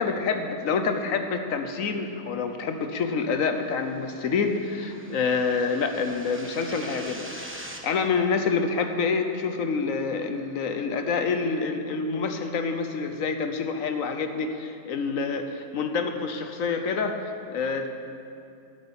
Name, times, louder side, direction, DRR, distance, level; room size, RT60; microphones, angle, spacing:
voice 1, 0.0-7.3 7.8-17.9, left 5 dB, 60° left, 7 dB, 1.1 m, -27 dB
sound 1, 3.4-7.8, right 1 dB, 10° right, 0.8 m, -43 dB
11.0 x 8.3 x 8.8 m, 2.6 s
omnidirectional pair, 1.8 m